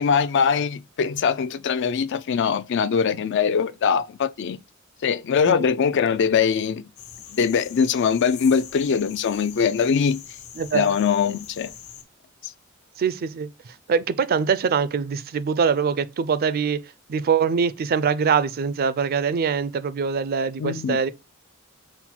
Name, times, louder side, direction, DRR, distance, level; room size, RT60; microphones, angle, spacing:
voice 1, 0.0-4.6 5.0-6.8 7.3-10.2 10.7-11.7 12.4-12.5 20.6-21.0, left 6 dB, 55° left, 0.4 m, -22 dB
sound 1, 7.0-12.0, left 8 dB, 85° left, 0.7 m, -42 dB
voice 2, 10.6-10.9 13.0-13.5 13.9-16.8 17.1-21.1, right 6 dB, 45° right, 0.4 m, -23 dB
5.6 x 2.1 x 4.3 m
head